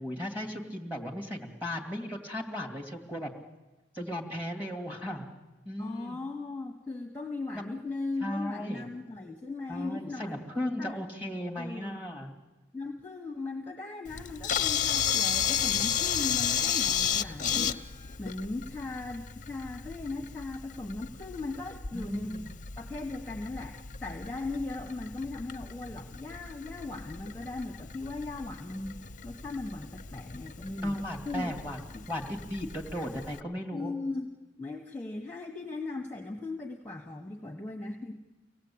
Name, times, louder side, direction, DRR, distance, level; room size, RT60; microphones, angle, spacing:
voice 1, 0.0-3.3 3.9-5.3 5.6-6.2 7.5-7.7 8.2-8.9 9.7-12.3 17.2-17.6 21.9-22.5 30.8-31.8 32.1-34.0, left 1 dB, 10° right, 0 dB, 2.6 m, -36 dB
voice 2, 5.8-10.4 10.8-11.0 11.4-12.0 12.7-17.7 18.2-22.5 22.8-29.0 29.2-31.0 31.2-31.5 31.9-32.0 33.7-34.3 34.6-38.1, left 3 dB, 10° left, 1 dB, 1.3 m, -38 dB
Camera, 14.1-33.4, left 8 dB, 40° left, 0.7 m, -34 dB
25.0 x 17.5 x 8.7 m, 1.2 s
head